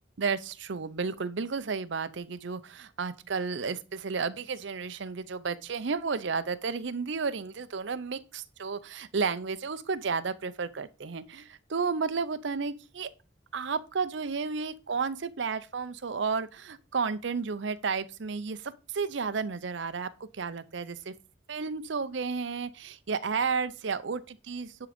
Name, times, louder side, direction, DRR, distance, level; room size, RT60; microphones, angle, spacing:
voice 1, 0.2-13.1 13.5-18.6 18.9-20.1 20.4-21.1 21.5-24.9, right 5 dB, 65° right, 0.6 m, -32 dB
10.0 x 3.8 x 5.0 m
head